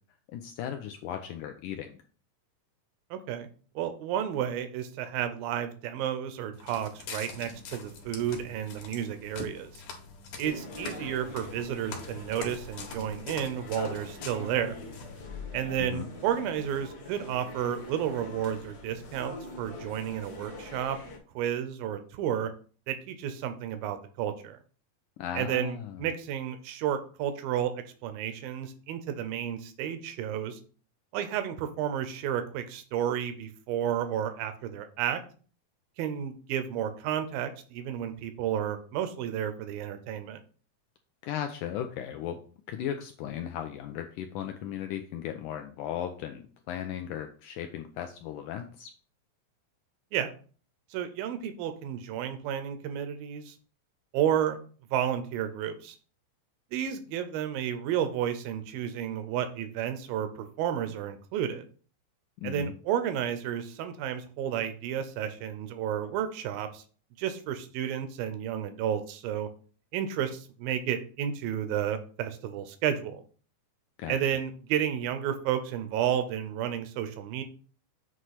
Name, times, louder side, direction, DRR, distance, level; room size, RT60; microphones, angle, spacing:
voice 1, 0.3-2.0 15.8-16.1 25.2-26.1 41.2-42.4 42.7-48.9 62.4-62.7 74.0-74.2, left 10 dB, 80° left, 6 dB, 1.8 m, -36 dB
voice 2, 3.1-3.5 3.8-9.8 10.4-14.8 15.5-21.0 21.4-22.5 22.9-24.6 25.4-27.7 28.0-30.6 31.1-35.2 36.0-40.4 50.1-50.3 50.9-53.6 54.1-54.6 54.9-56.0 56.7-61.6 62.4-66.8 67.2-69.5 69.9-73.2 74.1-77.4, right 9 dB, 85° right, 9 dB, 2.5 m, -31 dB
Walk footsteps, 6.5-15.2, left 5 dB, 65° left, 2.7 m, -44 dB
sound 1, 10.4-21.2, left 2 dB, 50° left, 1.1 m, -43 dB
7.9 x 3.1 x 5.8 m, 0.41 s
omnidirectional pair, 4.1 m